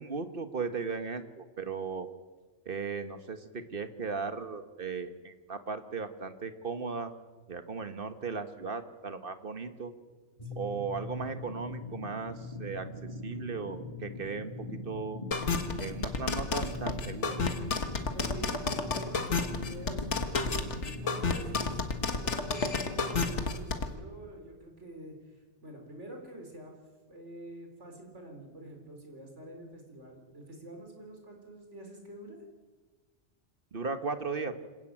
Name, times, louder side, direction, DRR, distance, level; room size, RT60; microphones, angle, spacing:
voice 1, 0.0-2.1 2.6-7.1 7.5-9.9 10.5-12.9 13.2-15.2 15.8-17.4 33.7-34.5, right 4 dB, 50° right, 9 dB, 1.6 m, -37 dB
sound 1, 10.4-23.4, left 2 dB, 30° left, 3.0 m, -42 dB
voice 2, 10.4-10.8 13.3-13.5 17.8-21.9 22.2-26.7 27.1-32.4, right 1 dB, 90° right, 2 dB, 4.7 m, -47 dB
sound 2, 15.3-23.9, left 4 dB, 80° left, 1.9 m, -30 dB
26.5 x 13.5 x 9.0 m, 1.3 s
omnidirectional pair, 1.2 m